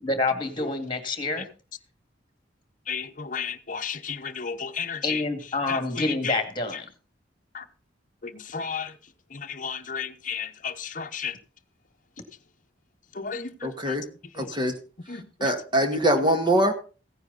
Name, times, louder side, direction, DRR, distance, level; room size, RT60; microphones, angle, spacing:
voice 1, 0.0-1.5 5.0-6.9, left 2 dB, 25° left, 2.2 m, -27 dB
voice 2, 2.9-5.2 5.7-6.4 6.7-6.8 7.5-7.7 8.2-9.0 9.3-11.4 13.1-14.0 14.3-14.6 15.1-15.6, left 6 dB, 45° left, 1.0 m, -33 dB
voice 3, 13.6-14.1 14.4-14.8 15.4-16.7, right 1 dB, 25° right, 1.8 m, -23 dB
15.5 x 9.6 x 4.0 m
head